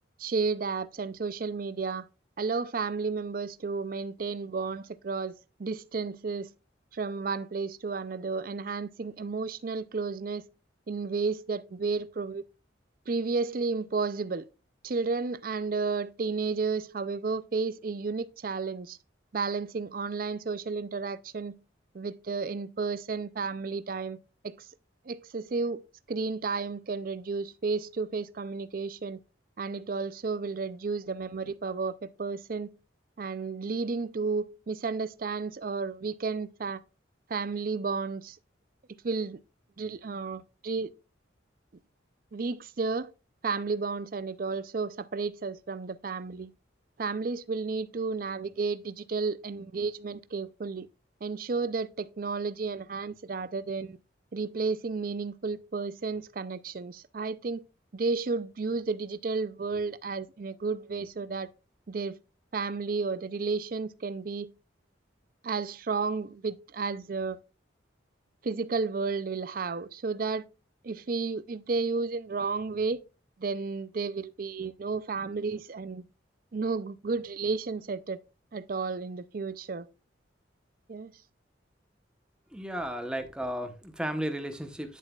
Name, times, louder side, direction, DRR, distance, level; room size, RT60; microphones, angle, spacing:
voice 1, 0.2-2.1 2.4-6.5 6.9-10.4 10.9-12.4 13.1-14.5 14.8-19.0 19.3-21.6 21.9-24.2 24.4-24.7 25.1-25.8 26.1-29.2 29.6-32.7 33.2-36.8 37.3-38.4 39.0-39.4 39.8-40.9 42.3-43.1 43.4-46.5 47.0-50.9 51.2-54.0 54.3-57.6 57.9-61.5 61.9-62.2 62.5-64.5 65.4-67.4 68.4-70.5 70.8-73.0 73.4-76.0 76.5-78.2 78.5-79.9 80.9-81.1, right 4 dB, 45° right, 0.4 m, -32 dB
voice 2, 82.5-85.0, equal, 5° right, 0.9 m, -34 dB
10.0 x 7.3 x 2.3 m
head